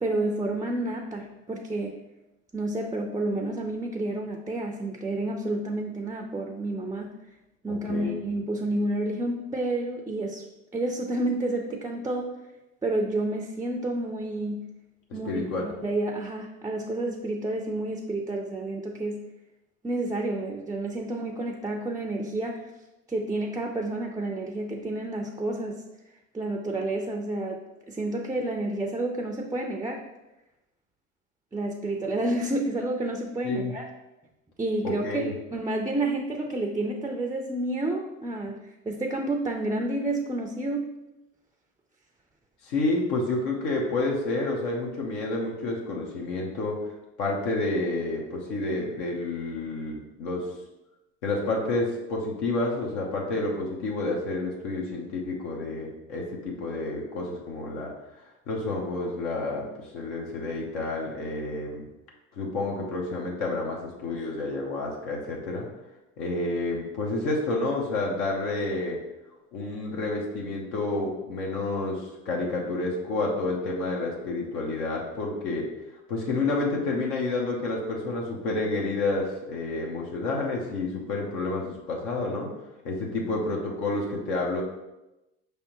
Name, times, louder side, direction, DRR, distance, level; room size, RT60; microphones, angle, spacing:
voice 1, 0.0-2.0 2.5-7.1 7.6-10.4 10.7-12.3 12.8-14.6 15.1-19.2 19.8-22.7 23.1-25.8 26.3-27.6 27.9-30.0 31.5-33.8 34.6-38.6 38.9-40.9, right 2 dB, 10° right, 2 dB, 0.4 m, -30 dB
voice 2, 7.7-8.2 15.2-15.7 33.4-33.7 34.8-35.3 42.6-46.8 47.2-50.4 51.2-57.9 58.5-61.9 62.4-65.7 66.2-69.0 69.5-75.7 76.1-82.5 82.8-84.6, left 2 dB, 80° left, -1 dB, 1.0 m, -29 dB
5.4 x 3.4 x 2.9 m, 0.97 s
hypercardioid pair, 80°, 36 cm